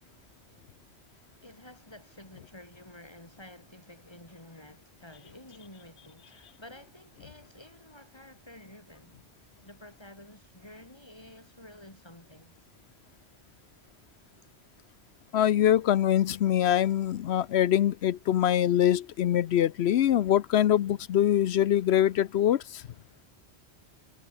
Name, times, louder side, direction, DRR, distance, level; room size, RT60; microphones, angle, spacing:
voice 1, 1.4-9.2 9.6-12.6, left 1 dB, 25° left, 5.7 m, -51 dB
voice 2, 15.3-22.8, left 11 dB, 70° left, 0.9 m, -24 dB
omnidirectional pair, 1.1 m